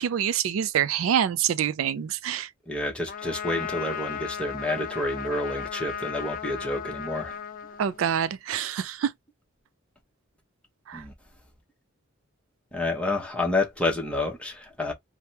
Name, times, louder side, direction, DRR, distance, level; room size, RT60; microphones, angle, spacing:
voice 1, 0.0-2.5 7.8-9.1 10.9-11.0, right 9 dB, 85° right, 0.4 m, -26 dB
voice 2, 2.7-7.3 10.9-11.1 12.7-14.9, left 2 dB, 5° left, 1.0 m, -29 dB
Trumpet, 3.1-8.3, left 8 dB, 45° left, 0.5 m, -36 dB
3.4 x 2.2 x 2.7 m
head